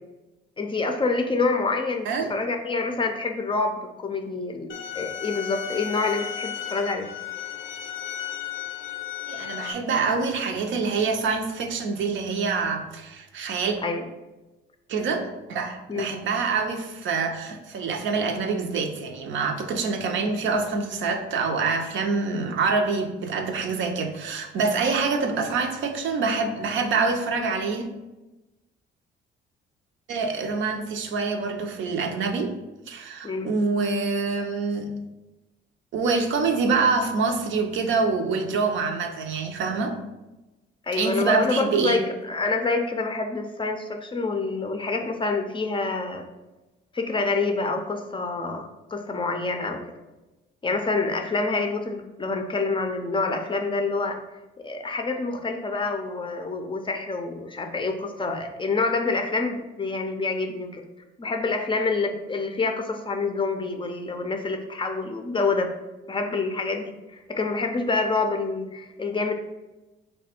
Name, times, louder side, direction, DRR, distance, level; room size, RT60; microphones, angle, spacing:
voice 1, 0.6-7.1 13.8-14.1 15.9-16.1 33.2-33.5 40.9-46.2 46.9-48.7 48.9-49.8 50.6-54.2 54.6-60.8 61.2-65.7 66.1-69.3, left 3 dB, 25° left, 4 dB, 0.4 m, -27 dB
sound 1, 4.7-9.7, left 10 dB, 80° left, 0.5 m, -34 dB
voice 2, 9.3-13.8 14.9-27.8 30.1-32.5 32.9-34.9 35.9-40.0 40.9-42.0, right 4 dB, 70° right, 4 dB, 0.5 m, -26 dB
3.2 x 2.2 x 4.3 m, 1.1 s
cardioid pair, 90°, 20 cm